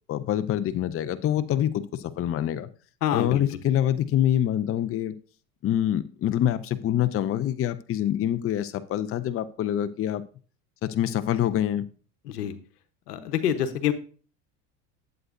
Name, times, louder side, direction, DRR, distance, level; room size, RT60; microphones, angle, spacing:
voice 1, 0.1-2.7 3.1-5.1 5.6-10.2 10.8-11.9, left 11 dB, 30° left, 11 dB, 0.6 m, -25 dB
voice 2, 3.0-3.4 12.3-12.5 13.1-13.9, left 10 dB, 90° left, 10 dB, 1.1 m, -26 dB
11.0 x 8.0 x 2.6 m, 0.40 s
hypercardioid pair, 90°, 46 cm